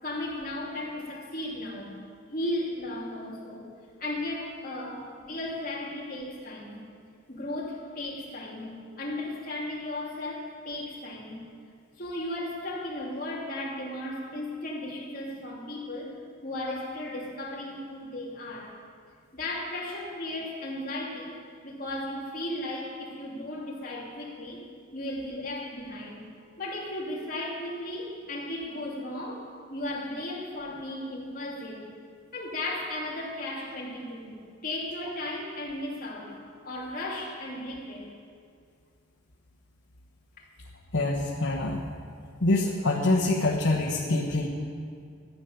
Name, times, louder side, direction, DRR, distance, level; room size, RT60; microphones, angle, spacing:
voice 1, 0.0-2.0 2.3-3.7 4.0-6.8 7.3-11.4 12.0-16.2 16.4-18.8 19.3-21.3 21.6-24.6 24.9-26.3 26.6-31.9 32.3-36.4 36.6-38.1 40.4-40.5, left 1 dB, 45° left, -4 dB, 3.0 m, -35 dB
voice 2, 40.9-41.9 42.4-44.5, left 2 dB, 85° left, -3 dB, 1.4 m, -25 dB
14.0 x 9.5 x 6.9 m, 2.2 s
head